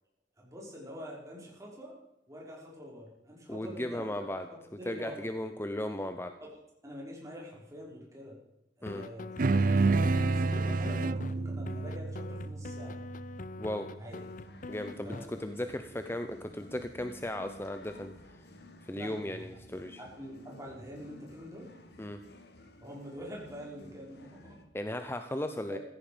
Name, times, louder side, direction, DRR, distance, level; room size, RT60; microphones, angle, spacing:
voice 1, 0.4-1.9 2.3-5.3 6.4-6.5 6.8-8.4 8.8-9.3 9.8-13.0 14.0-14.2 15.0-15.3 18.9-19.4 20.0-21.7 22.8-24.6 25.1-25.2 25.7-25.8, equal, 20° right, -3 dB, 5.5 m, -45 dB
voice 2, 3.5-4.5 4.9-6.3 8.8-9.0 13.6-13.9 14.7-18.1 18.8-20.0 22.0-22.2 24.7-25.8, left 1 dB, 15° left, 8 dB, 0.8 m, -36 dB
sound 1, 8.9-11.3 11.7-15.3, left 3 dB, 45° left, 0.7 m, -44 dB
sound 2, 9.4-14.1, right 3 dB, 50° right, 0.5 m, -29 dB
sound 3, 14.1-24.7, left 2 dB, 65° left, 1.8 m, -54 dB
16.0 x 14.0 x 5.2 m, 0.85 s
head